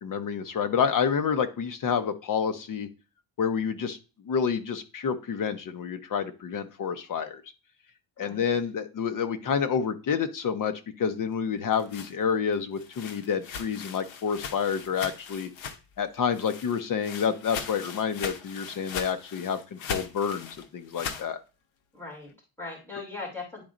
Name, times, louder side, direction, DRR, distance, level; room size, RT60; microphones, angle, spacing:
voice 1, 0.0-2.9 3.4-4.0 4.2-7.4 8.2-15.5 16.0-21.4, left 7 dB, 45° left, 9 dB, 0.9 m, -28 dB
voice 2, 8.2-8.5 21.9-23.6, left 3 dB, 5° left, -3 dB, 2.7 m, -40 dB
sound 1, 11.5-16.0 16.3-21.3, left 6 dB, 75° left, 1.1 m, -39 dB
10.5 x 4.1 x 2.5 m, 0.32 s
cardioid pair, 140°, 46 cm